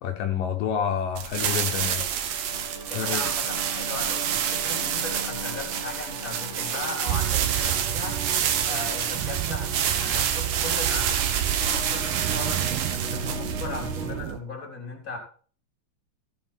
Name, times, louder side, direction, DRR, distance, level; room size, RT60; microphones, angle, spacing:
voice 1, 0.0-2.1 2.9-3.2, left 8 dB, 75° left, 4 dB, 2.6 m, -28 dB
sound 1, 1.1-14.3, right 8 dB, 65° right, 1.8 m, -28 dB
sound 2, 1.8-14.2, right 3 dB, 35° right, 1.1 m, -39 dB
voice 2, 2.9-8.2 8.7-15.2, left 3 dB, 25° left, 2 dB, 3.5 m, -37 dB
sound 3, 7.1-14.4, right 14 dB, 80° right, 2.2 m, -32 dB
16.0 x 7.4 x 4.4 m, 0.42 s
omnidirectional pair, 4.0 m